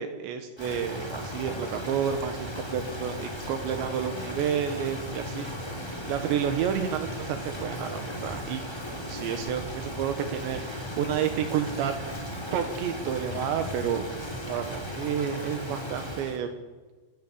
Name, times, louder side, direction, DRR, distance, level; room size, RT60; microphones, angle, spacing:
voice 1, 0.0-5.5 6.1-11.9 12.3-14.1 14.5-16.5, right 8 dB, 80° right, 7 dB, 3.5 m, -30 dB
Rain, 0.6-16.4, equal, 5° left, 2.3 m, -36 dB
sound 1, 1.7-15.1, left 2 dB, 55° left, 7.2 m, -50 dB
28.5 x 12.5 x 8.5 m, 1.3 s
omnidirectional pair, 5.1 m